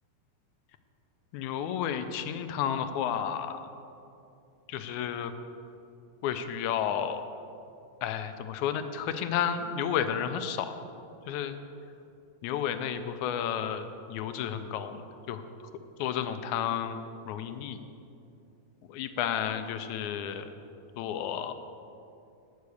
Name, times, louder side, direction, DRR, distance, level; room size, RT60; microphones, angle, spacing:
voice 1, 1.3-3.6 4.7-5.3 6.2-7.2 8.0-10.8 11.3-11.5 12.4-15.0 15.3-15.4 16.0-17.0 17.3-17.8 18.9-20.5 21.0-21.5, left 9 dB, 80° left, 9 dB, 2.0 m, -31 dB
10.5 x 6.4 x 8.3 m, 2.6 s
omnidirectional pair, 3.4 m